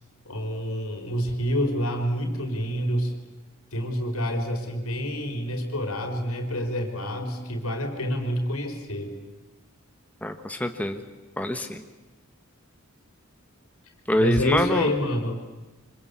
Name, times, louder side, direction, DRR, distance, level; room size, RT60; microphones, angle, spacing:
voice 1, 0.2-3.1 3.7-9.1 14.2-15.4, equal, 80° left, 3 dB, 4.8 m, -27 dB
voice 2, 10.2-11.0 11.4-11.8 14.1-14.9, left 1 dB, 5° left, 6 dB, 1.2 m, -25 dB
26.5 x 25.5 x 8.5 m, 1.1 s
head